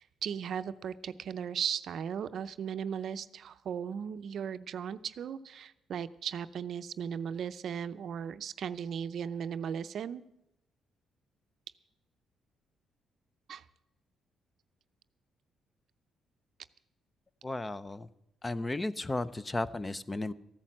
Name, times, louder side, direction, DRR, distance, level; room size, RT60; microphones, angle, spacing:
voice 1, 0.0-10.2 13.5-13.6, right 8 dB, 65° right, 13 dB, 0.5 m, -37 dB
voice 2, 17.4-18.1 18.4-20.3, left 2 dB, 20° left, 15 dB, 0.6 m, -34 dB
14.0 x 9.0 x 7.4 m, 0.84 s
cardioid pair, 90°, 0 cm